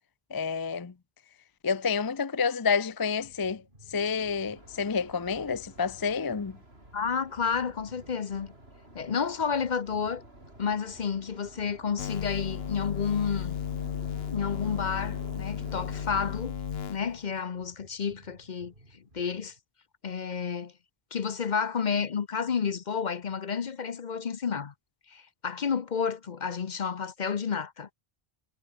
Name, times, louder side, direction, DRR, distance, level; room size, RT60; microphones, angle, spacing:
voice 1, 0.3-0.9 1.6-3.6 3.9-6.6, left 5 dB, 25° left, 0.5 m, -29 dB
sound 1, 3.2-19.6, right 1 dB, 55° right, 7.9 m, -57 dB
sound 2, 4.2-16.3, right 1 dB, 75° right, 7.0 m, -51 dB
voice 2, 6.9-8.5 8.9-10.2 10.6-13.6 14.3-16.5 16.9-19.5 20.0-20.7 21.1-24.7 25.1-27.9, left 6 dB, 50° left, 0.8 m, -31 dB
sound 3, 12.0-17.4, left 8 dB, 70° left, 1.2 m, -35 dB
omnidirectional pair, 1.1 m